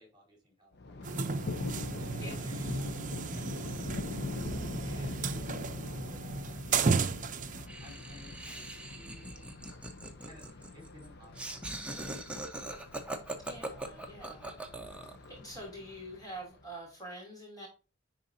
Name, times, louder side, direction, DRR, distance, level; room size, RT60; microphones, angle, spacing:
voice 1, 0.0-1.6 2.0-9.8 10.3-12.8, equal, 25° right, -2 dB, 3.9 m, -57 dB
Thunder, 0.7-16.7, left 2 dB, 60° left, 0.8 m, -43 dB
sound 1, 1.0-7.7, right 4 dB, 40° right, 0.6 m, -34 dB
Laughter, 7.7-15.2, right 1 dB, 5° right, 1.0 m, -41 dB
voice 2, 13.4-14.5 15.3-17.7, right 1 dB, 20° left, -2 dB, 2.8 m, -45 dB
10.5 x 4.0 x 2.7 m, 0.32 s
head